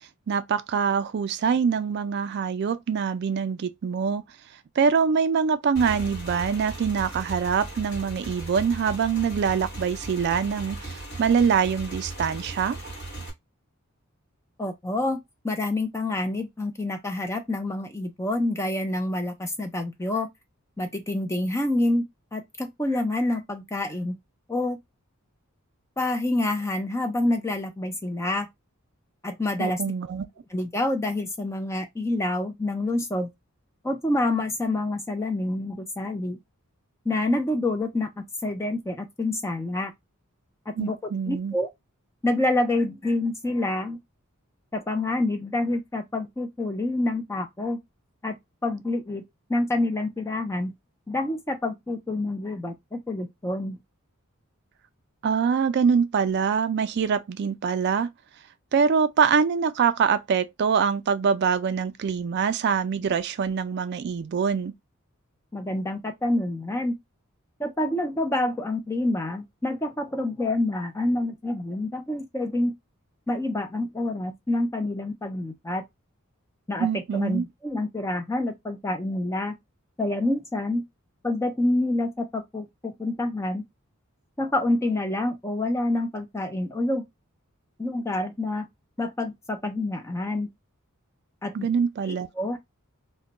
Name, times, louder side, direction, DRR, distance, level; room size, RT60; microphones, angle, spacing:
voice 1, 0.3-4.2 4.8-12.8 29.6-30.2 40.8-41.5 55.2-58.1 58.7-64.7 76.8-77.5 91.5-92.3, right 6 dB, 50° right, 0.3 m, -24 dB
Motorcycle / Engine, 5.8-13.3, right 2 dB, 50° left, 1.1 m, -37 dB
voice 2, 14.6-15.2 15.4-20.3 20.8-22.0 22.3-24.2 24.5-24.8 26.0-28.5 29.2-29.8 30.5-33.3 33.8-36.4 37.1-39.9 40.7-41.0 41.3-41.7 42.2-44.0 44.7-47.8 48.2-48.4 48.6-49.2 49.5-50.7 51.1-53.8 65.5-66.9 67.6-72.7 73.3-75.8 76.7-79.5 80.0-80.8 81.2-83.6 84.4-87.0 87.8-88.7 89.0-90.5 91.4-91.7 92.1-92.6, left 2 dB, 15° left, 0.5 m, -27 dB
2.2 x 2.2 x 3.8 m
head